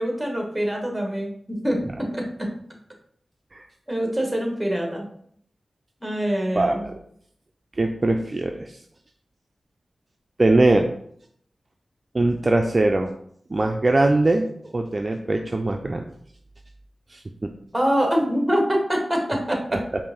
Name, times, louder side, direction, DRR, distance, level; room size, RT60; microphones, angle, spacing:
voice 1, 0.0-1.8 2.1-2.2 3.9-5.1 6.0-6.8 17.7-19.6, equal, 10° right, 1 dB, 1.3 m, -24 dB
voice 2, 6.5-6.9 7.8-8.7 10.4-10.9 12.1-13.1 13.5-14.5 14.7-16.1 17.1-17.2 19.7-19.8, right 2 dB, 40° right, 4 dB, 0.4 m, -21 dB
5.1 x 2.5 x 3.6 m, 0.66 s
cardioid pair, 45°, 0 cm